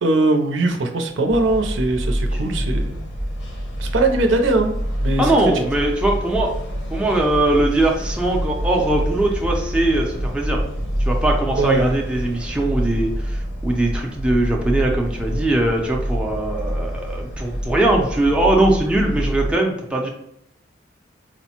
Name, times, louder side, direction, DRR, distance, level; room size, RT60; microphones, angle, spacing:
voice 1, 0.0-3.0 3.8-5.7 11.6-12.0, right 2 dB, 90° right, 4 dB, 0.5 m, -21 dB
sound 1, 1.3-19.5, equal, 70° left, 0.9 m, -26 dB
voice 2, 5.2-6.5 6.9-10.6 11.0-20.1, right 1 dB, 5° right, -1 dB, 0.4 m, -21 dB
4.2 x 2.0 x 2.8 m, 0.77 s
head